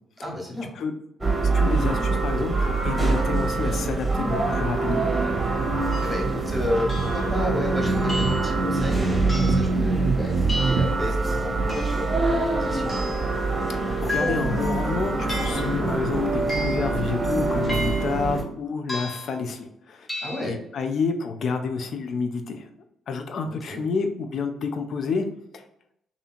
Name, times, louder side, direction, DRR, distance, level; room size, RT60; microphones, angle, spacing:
voice 1, 0.2-0.7 6.0-12.9 20.2-20.5 23.5-23.8, left 1 dB, 5° right, -1 dB, 1.2 m, -32 dB
sound 1, 1.2-18.4, right 3 dB, 20° right, 0.8 m, -25 dB
voice 2, 1.5-5.1 13.7-20.1 20.4-22.7 23.1-25.3 25.5-25.6, left 5 dB, 55° left, 6 dB, 0.4 m, -29 dB
sound 2, 2.4-10.9, right 4 dB, 55° right, 0.3 m, -30 dB
sound 3, 5.9-6.2 6.9-7.3 8.1-8.6 9.3-9.7 10.5-11.0 11.7-12.1 12.9-13.3 14.1-14.6 15.3-15.7 16.5-16.9 17.7-18.2 18.9-19.4 20.1-20.4, equal, 30° left, 1.1 m, -33 dB
2.7 x 2.6 x 2.4 m, 0.80 s
figure-of-eight pair, 45°, 0 cm